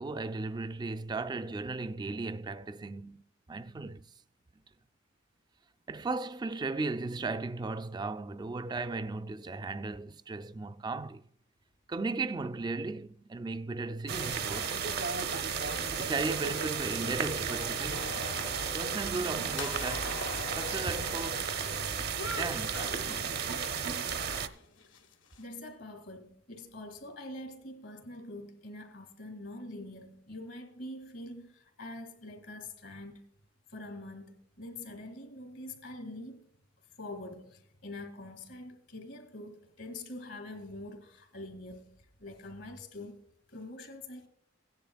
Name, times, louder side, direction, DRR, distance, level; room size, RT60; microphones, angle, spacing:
voice 1, 0.0-3.2 3.5-4.0 5.9-11.2 11.9-14.8 16.0-18.4 18.7-20.2 20.6-21.6 22.3-23.5, right 3 dB, 20° right, 0.3 m, -36 dB
sound 1, 14.1-24.5, right 6 dB, 55° right, 0.7 m, -33 dB
sound 2, 17.9-23.7 24.1-25.4, left 3 dB, 85° left, 1.3 m, -44 dB
voice 2, 25.4-33.2 33.7-36.4 37.0-41.9 42.2-43.2 43.5-44.3, left 1 dB, 65° left, 2.1 m, -44 dB
16.5 x 10.5 x 2.3 m
head